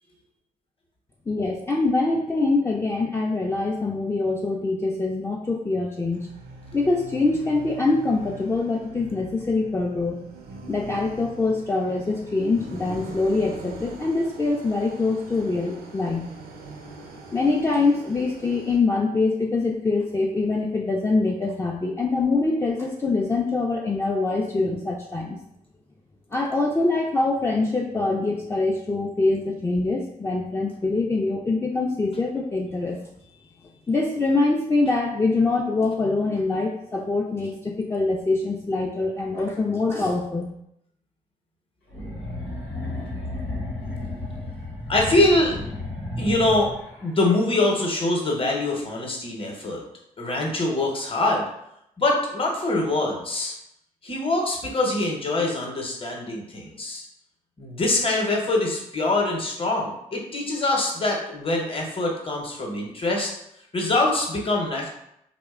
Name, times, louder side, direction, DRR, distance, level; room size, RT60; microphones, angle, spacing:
voice 1, 1.3-6.3 6.7-10.2 10.7-16.3 17.3-25.4 26.3-33.0 33.9-40.5, left 3 dB, 15° left, -1 dB, 0.4 m, -24 dB
sound 1, 6.1-18.8, right 2 dB, 65° right, 0.5 m, -43 dB
sound 2, 41.9-47.1, left 2 dB, 85° left, 0.8 m, -33 dB
voice 2, 44.9-45.6 46.2-46.7 47.0-49.8 50.2-51.5 52.0-53.5 54.0-57.0 57.6-63.3 63.7-64.9, left 2 dB, 35° left, -1 dB, 0.8 m, -24 dB
2.7 x 2.1 x 2.4 m, 0.77 s
hypercardioid pair, 40°, 16 cm